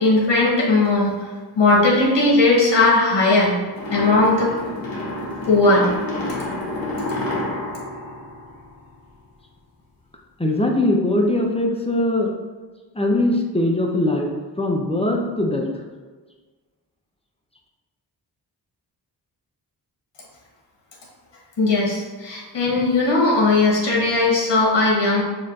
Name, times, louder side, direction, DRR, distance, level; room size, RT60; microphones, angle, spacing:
voice 1, 0.0-1.2 1.6-3.6 3.9-4.5 5.5-5.9 21.6-25.2, left 2 dB, 75° left, -3 dB, 1.1 m, -17 dB
sound 1, 3.7-9.1, left 1 dB, 55° left, 1.1 m, -29 dB
voice 2, 10.4-12.3 12.9-14.3 14.6-15.7, left 1 dB, 15° left, 1 dB, 0.6 m, -21 dB
6.4 x 2.6 x 2.5 m, 1.3 s
cardioid pair, 70°, 42 cm